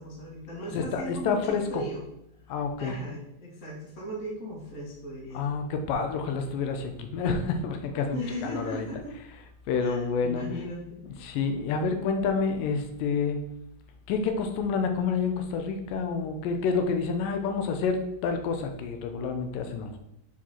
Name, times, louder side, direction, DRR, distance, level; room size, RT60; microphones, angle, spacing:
voice 1, 0.0-2.0 2.8-5.5 8.1-9.1 9.8-11.0, equal, 30° left, -5 dB, 1.9 m, -37 dB
voice 2, 0.7-1.8 2.5-3.0 5.3-8.9 9.7-10.5 11.1-13.4 14.1-20.0, left 5 dB, 80° left, 6 dB, 2.5 m, -28 dB
7.2 x 4.5 x 4.4 m, 0.80 s
omnidirectional pair, 3.9 m